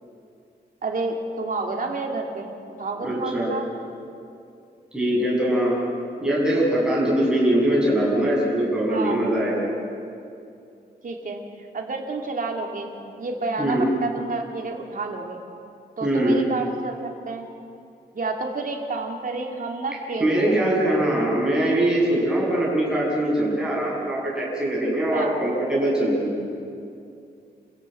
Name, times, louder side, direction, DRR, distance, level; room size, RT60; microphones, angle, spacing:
voice 1, 0.8-2.5 2.8-3.7 8.9-9.2 11.0-15.4 16.0-17.5 18.1-20.7 25.1-25.4, right 3 dB, 50° right, 2 dB, 2.7 m, -30 dB
voice 2, 3.0-3.5 4.9-5.7 6.2-9.7 13.6-13.9 16.0-16.4 20.2-26.5, right 1 dB, 5° right, -6 dB, 7.1 m, -22 dB
28.0 x 16.0 x 7.7 m, 2.5 s
wide cardioid pair, 155°, 18 cm